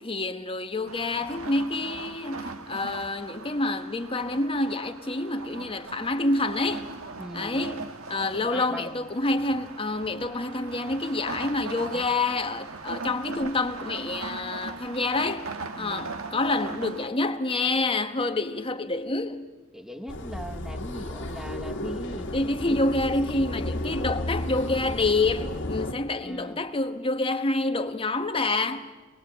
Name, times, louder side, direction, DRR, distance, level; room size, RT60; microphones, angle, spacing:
voice 1, 0.0-6.9 7.3-15.5 15.8-19.5 22.3-28.9, left 2 dB, 25° left, 1.2 m, -27 dB
sound 1, 0.9-17.1, right 3 dB, 85° right, 1.5 m, -40 dB
voice 2, 7.2-7.7 8.3-9.1 15.8-16.3 19.7-22.3 22.7-22.8 26.2-26.6, equal, ahead, 1.1 m, -40 dB
sound 2, 20.1-25.9, left 1 dB, 60° left, 1.7 m, -33 dB
25.5 x 20.5 x 8.1 m
head